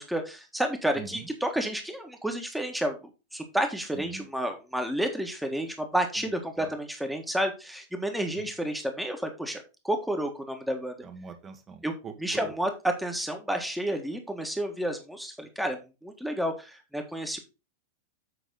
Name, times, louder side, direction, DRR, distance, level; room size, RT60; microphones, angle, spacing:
voice 1, 0.0-3.0 3.3-10.9 11.8-11.9 12.2-12.7 13.0-17.4, right 1 dB, ahead, 5 dB, 1.6 m, -31 dB
voice 2, 3.9-4.3 6.6-6.7 8.3-8.5 11.0-12.1 12.4-12.5, right 6 dB, 25° right, 7 dB, 1.5 m, -42 dB
8.1 x 5.9 x 3.9 m, 0.28 s
figure-of-eight pair, 90°, 0 cm